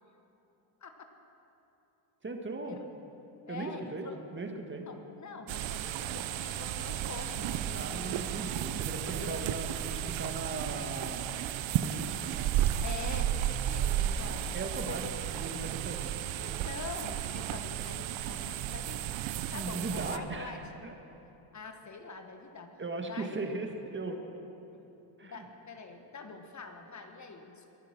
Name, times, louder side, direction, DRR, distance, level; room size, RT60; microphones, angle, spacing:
voice 1, 2.2-2.8 3.5-4.9 7.7-11.3 11.7-12.5 14.5-15.0 15.3-16.2 19.5-20.9 22.8-24.2 25.2-25.5, right 3 dB, 20° right, 4 dB, 1.9 m, -38 dB
voice 2, 3.5-4.2 4.9-8.3 9.0-9.4 12.8-15.0 16.4-20.6 21.5-22.7 23.0-23.5 25.2-27.7, left 4 dB, 35° left, 5 dB, 1.5 m, -45 dB
sound 1, 5.5-20.2, right 11 dB, 65° right, 0.9 m, -33 dB
22.5 x 10.5 x 6.2 m, 2.9 s
cardioid pair, 90°, 50 cm